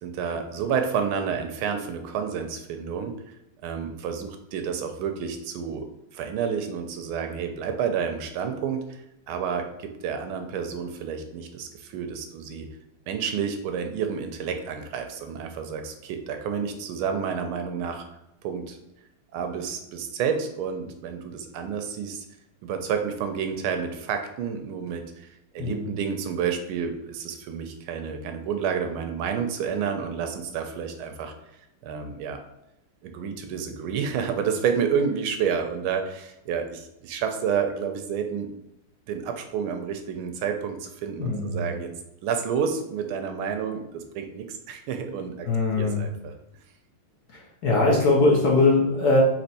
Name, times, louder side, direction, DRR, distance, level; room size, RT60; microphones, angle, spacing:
voice 1, 0.0-3.2 3.6-5.9 6.1-12.7 13.1-18.1 18.4-18.8 19.3-22.3 22.6-31.3 31.8-32.4 33.0-38.5 39.1-41.9 42.2-45.5 45.8-46.3, right 7 dB, 80° right, 6 dB, 1.4 m, -30 dB
voice 2, 41.2-41.7 45.5-46.0 47.3-49.2, left 3 dB, 60° left, -3 dB, 1.1 m, -21 dB
4.3 x 3.0 x 4.0 m, 0.86 s
omnidirectional pair, 2.4 m